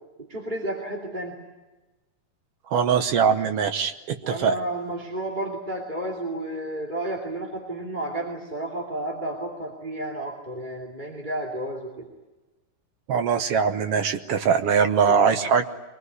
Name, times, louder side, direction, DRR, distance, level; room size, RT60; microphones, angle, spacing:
voice 1, 0.3-1.4 4.2-12.1 15.0-15.2, right 1 dB, 15° right, -1 dB, 2.4 m, -32 dB
voice 2, 2.7-4.5 13.1-15.7, right 6 dB, 65° right, 7 dB, 1.5 m, -22 dB
24.5 x 19.5 x 9.8 m, 1.2 s
omnidirectional pair, 3.7 m